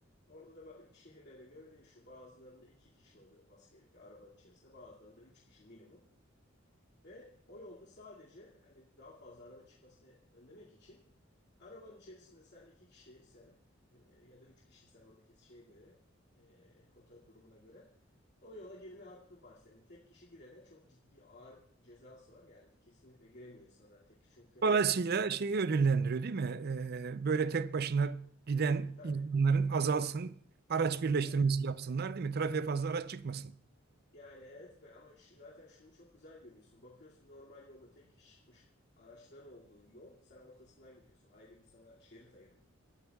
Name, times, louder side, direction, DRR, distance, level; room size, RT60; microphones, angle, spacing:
voice 1, 0.3-6.1 7.0-11.0 11.6-13.6 13.9-16.0 16.3-17.9 18.4-24.6 29.0-29.2 31.3-31.5 34.1-38.7 39.0-42.6, left 1 dB, 60° left, 2.4 m, -56 dB
voice 2, 24.6-30.3 30.7-33.5, right 5 dB, 50° right, 0.5 m, -31 dB
29.5 x 13.5 x 2.4 m
head